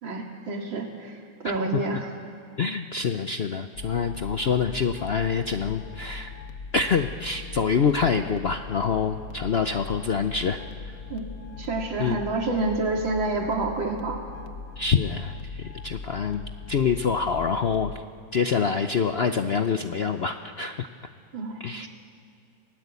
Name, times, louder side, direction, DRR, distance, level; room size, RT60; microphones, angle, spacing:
voice 1, 0.0-2.1 11.1-11.3 11.6-14.2 21.3-21.9, right 3 dB, 80° right, 1 dB, 3.0 m, -28 dB
voice 2, 1.4-1.8 2.6-6.3 6.7-10.6 12.0-12.2 14.8-18.0 18.3-20.9 21.6-21.9, left 6 dB, 75° left, 7 dB, 0.5 m, -26 dB
sound 1, 3.7-18.0, left 5 dB, 55° left, 1.2 m, -40 dB
28.5 x 19.5 x 8.3 m, 2.2 s
omnidirectional pair, 2.1 m